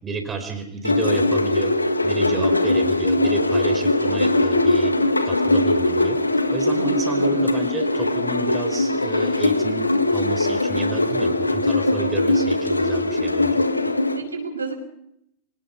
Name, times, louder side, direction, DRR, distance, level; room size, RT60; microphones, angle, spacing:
voice 1, 0.0-1.7 2.0-5.0 5.2-6.2 6.5-13.6, right 3 dB, 20° right, 6 dB, 4.4 m, -30 dB
sound 1, 0.8-14.2, left 2 dB, 85° left, 1.7 m, -21 dB
voice 2, 2.2-2.6 6.7-7.4 14.2-14.7, right 4 dB, 80° right, 4 dB, 5.7 m, -31 dB
25.5 x 19.0 x 5.8 m, 0.77 s
figure-of-eight pair, 90°, 0 cm